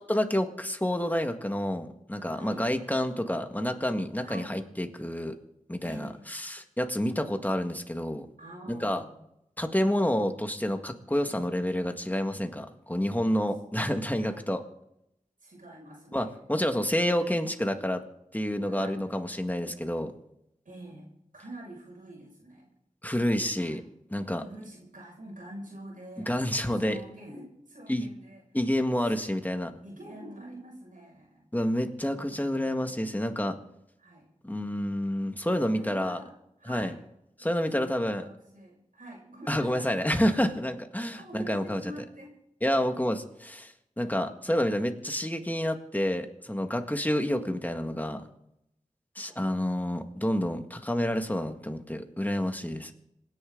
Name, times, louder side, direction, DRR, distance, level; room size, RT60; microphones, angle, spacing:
voice 1, 0.1-5.4 5.7-8.3 8.7-9.0 9.6-14.6 16.1-18.0 18.3-20.1 23.0-23.8 24.1-24.4 26.3-27.0 27.9-28.1 28.5-29.7 31.5-33.6 34.4-36.2 36.7-36.9 37.4-38.2 39.5-41.8 42.6-48.2 49.2-52.9, equal, 10° left, 6 dB, 1.8 m, -29 dB
voice 2, 4.2-4.6 5.8-6.2 8.4-9.2 14.1-14.4 15.4-16.4 18.6-19.1 20.6-22.7 23.5-23.8 24.3-26.3 26.7-28.4 29.0-29.5 29.8-31.5 32.3-32.7 34.0-34.3 35.7-37.0 37.7-39.9 40.3-40.5 41.1-42.3 42.7-42.8 46.8-46.9 49.2-49.4 52.6-52.9, right 1 dB, 90° right, -3 dB, 6.3 m, -46 dB
27.0 x 10.5 x 3.9 m, 0.81 s
wide cardioid pair, 50°, 13 cm